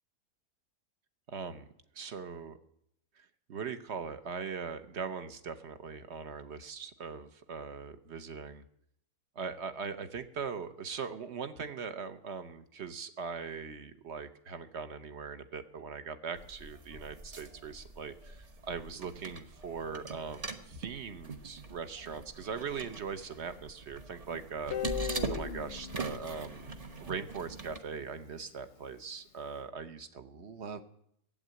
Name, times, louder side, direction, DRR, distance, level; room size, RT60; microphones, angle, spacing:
voice 1, 1.3-1.7 2.0-2.6 3.2-8.6 9.3-26.7 27.0-30.8, right 5 dB, 50° right, 10 dB, 1.1 m, -40 dB
sound 1, 16.4-27.8, right 3 dB, 30° right, 0.8 m, -42 dB
Guitar, 24.7-27.6, left 11 dB, 55° left, 0.9 m, -40 dB
16.0 x 7.9 x 9.4 m, 0.74 s
omnidirectional pair, 1.7 m